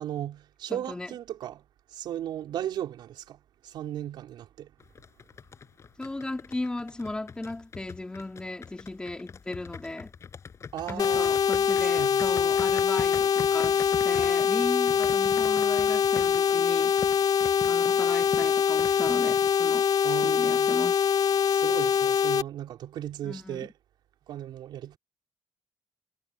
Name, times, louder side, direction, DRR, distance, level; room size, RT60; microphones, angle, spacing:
voice 1, 0.0-1.6 1.9-4.7 10.7-11.4 11.9-12.5 20.0-20.7 21.5-23.7 24.3-25.0, right 11 dB, 85° right, 4.3 m, -36 dB
voice 2, 0.7-1.1 6.0-10.1 10.9-17.0 17.7-19.9 20.2-21.0 23.2-23.7, left 2 dB, 10° left, 2.5 m, -36 dB
sound 1, 4.8-19.7, left 6 dB, 40° left, 6.1 m, -43 dB
sound 2, 11.0-22.4, left 7 dB, 55° left, 1.0 m, -24 dB
cardioid pair, 145°, 8 cm